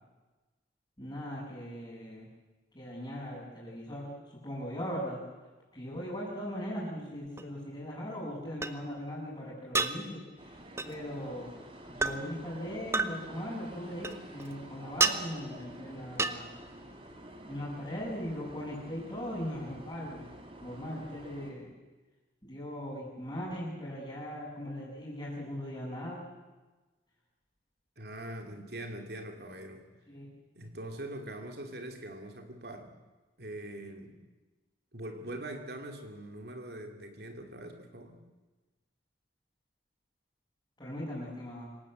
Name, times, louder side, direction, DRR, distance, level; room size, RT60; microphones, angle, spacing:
voice 1, 1.0-2.3 2.7-5.2 5.7-10.6 10.8-11.5 11.9-16.5 17.5-20.3 20.6-21.7 22.4-26.2 30.1-30.3 40.8-41.7, equal, 20° left, -10 dB, 7.4 m, -39 dB
sound 1, 7.4-7.5 8.6-8.7 9.7-9.9 10.8-10.9 12.0-12.2 12.9-13.1 14.0-14.5 15.0-15.2 16.2-16.4, right 3 dB, 15° right, 0.9 m, -28 dB
sound 2, 10.4-21.5, right 1 dB, 30° right, 2.9 m, -49 dB
voice 2, 28.0-29.9 30.5-32.9 33.4-34.2 34.9-38.2, right 1 dB, 60° right, 5 dB, 2.9 m, -42 dB
26.5 x 18.0 x 7.8 m, 1.2 s
head